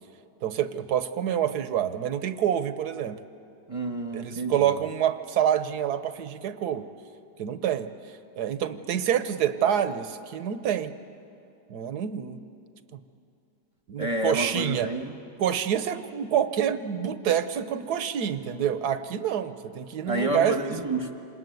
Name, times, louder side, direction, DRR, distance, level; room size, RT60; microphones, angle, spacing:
voice 1, 0.4-3.2 4.1-6.9 7.4-7.9 8.4-10.9 11.7-12.4 12.9-13.0 13.9-14.9 15.4-20.7, right 9 dB, 70° right, 12 dB, 1.4 m, -27 dB
voice 2, 3.7-4.5 14.0-15.1 20.1-21.1, right 1 dB, 20° right, 6 dB, 1.0 m, -29 dB
26.0 x 20.5 x 9.3 m, 2.6 s
omnidirectional pair, 1.9 m